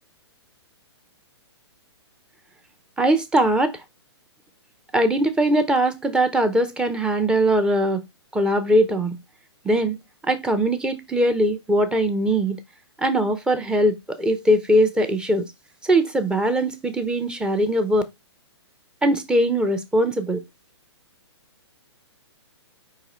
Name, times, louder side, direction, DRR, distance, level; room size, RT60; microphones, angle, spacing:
voice 1, 3.0-3.8 4.9-8.0 8.3-9.2 9.6-10.0 10.2-12.6 13.0-15.4 15.8-18.0 19.0-20.4, right 1 dB, 5° right, 0.5 m, -21 dB
4.9 x 3.7 x 3.0 m
figure-of-eight pair, 120°, 15 cm